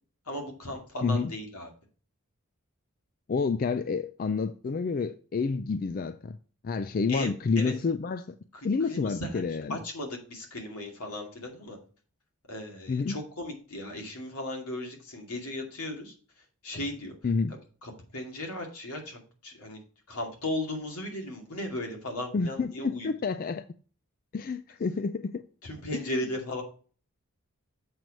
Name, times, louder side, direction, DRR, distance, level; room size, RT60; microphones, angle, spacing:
voice 1, 0.3-1.7 7.1-7.3 7.6-7.7 8.5-11.8 12.5-16.1 16.6-17.1 17.8-19.8 20.1-23.1 25.6-26.6, left 1 dB, 85° left, 2.4 m, -36 dB
voice 2, 1.0-1.3 3.3-6.4 6.6-8.4 8.6-9.8 12.9-13.2 17.2-17.5 22.3-23.6 24.3-25.4 25.9-26.1, left 4 dB, 40° left, 0.3 m, -29 dB
7.6 x 4.7 x 5.1 m
head